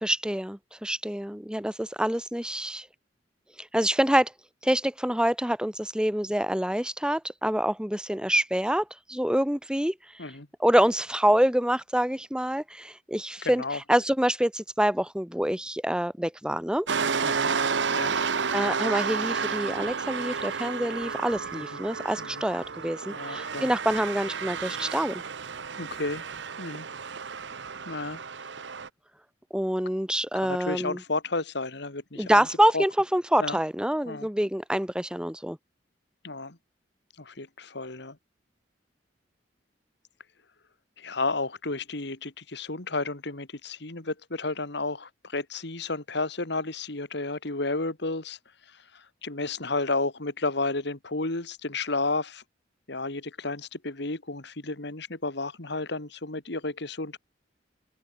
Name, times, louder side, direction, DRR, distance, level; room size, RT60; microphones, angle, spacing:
voice 1, 0.0-2.8 3.6-4.3 4.6-9.9 10.6-16.9 18.2-25.2 29.5-31.0 32.2-35.6, right 1 dB, 5° right, 1.6 m, -26 dB
voice 2, 13.4-13.8 17.2-17.5 17.9-18.2 21.7-21.8 22.2-22.4 23.1-23.7 25.8-26.2 26.6-26.9 27.9-28.2 30.3-32.4 32.7-32.8 33.4-33.6 34.1-34.3 36.2-36.6 37.2-38.2 41.0-48.4 48.9-52.4 52.9-57.2, left 3 dB, 65° left, 2.3 m, -32 dB
sound 1, 16.9-28.9, right 5 dB, 70° right, 0.9 m, -31 dB
open air
head